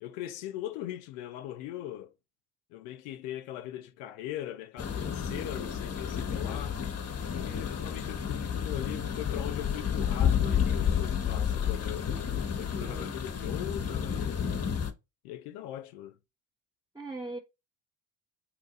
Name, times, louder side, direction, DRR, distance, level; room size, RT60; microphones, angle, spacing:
voice 1, 0.0-2.1 2.7-6.8 7.3-12.1 12.6-14.4 15.2-16.2, left 13 dB, 80° left, 0.5 m, -40 dB
sound 1, 4.8-14.9, left 8 dB, 30° left, 0.8 m, -31 dB
voice 2, 5.3-5.7 12.8-13.2 16.9-17.4, right 2 dB, 10° right, 0.7 m, -40 dB
2.8 x 2.6 x 3.9 m
hypercardioid pair, 55°, 50 cm